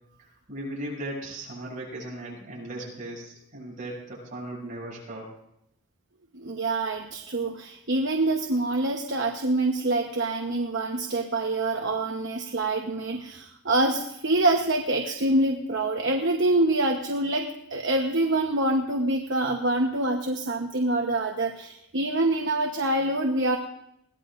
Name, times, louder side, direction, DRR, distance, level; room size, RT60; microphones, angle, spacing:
voice 1, 0.2-5.3, right 1 dB, 40° right, -4 dB, 7.2 m, -37 dB
voice 2, 6.3-23.6, right 2 dB, 60° right, 3 dB, 1.1 m, -26 dB
21.5 x 18.0 x 2.6 m, 0.76 s
head